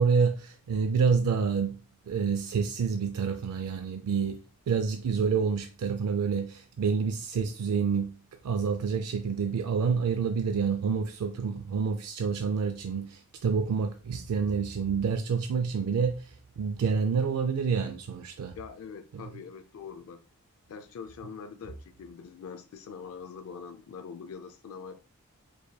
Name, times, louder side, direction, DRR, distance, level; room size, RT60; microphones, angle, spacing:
voice 1, 0.0-1.8 2.1-4.4 4.7-8.2 8.4-18.6 19.1-19.2, right 5 dB, 85° right, 0.3 m, -28 dB
voice 2, 18.6-20.3 20.7-25.0, left 6 dB, 70° left, 0.3 m, -43 dB
4.7 x 2.7 x 2.2 m
head